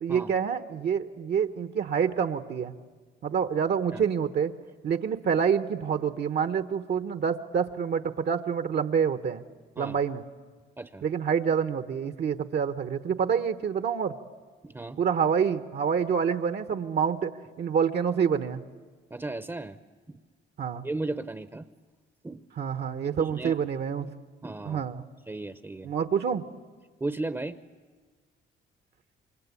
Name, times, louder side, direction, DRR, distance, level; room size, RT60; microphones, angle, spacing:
voice 1, 0.0-2.7 3.2-4.5 4.8-9.4 9.8-10.2 11.0-14.2 15.0-17.3 17.6-18.6 20.6-20.8 22.6-24.1 24.6-25.0 25.8-26.4, right 7 dB, 55° right, 9 dB, 1.1 m, -27 dB
voice 2, 14.6-15.0 19.1-19.8 20.1-20.2 20.8-21.7 22.2-22.4 23.2-23.5 24.4-24.8 25.3-25.9 27.0-27.6, right 2 dB, 15° right, 10 dB, 0.8 m, -35 dB
28.0 x 24.5 x 8.3 m, 1.4 s
cardioid pair, 90°, 20 cm